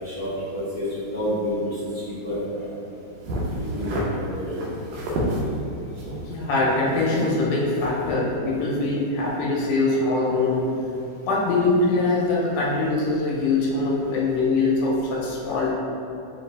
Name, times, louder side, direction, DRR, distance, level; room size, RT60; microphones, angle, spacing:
voice 1, 0.5-0.8 1.1-1.5 2.1-2.4 3.7-4.6, equal, 60° left, -13 dB, 0.9 m, -28 dB
sound 1, 3.2-4.1 4.5-5.4 6.0-7.5 7.7-8.1, equal, 80° right, 2.2 m, -30 dB
voice 2, 6.2-10.7 11.2-15.7, left 3 dB, 90° left, -4 dB, 2.4 m, -23 dB
5.7 x 2.5 x 3.3 m, 2.8 s
omnidirectional pair, 3.8 m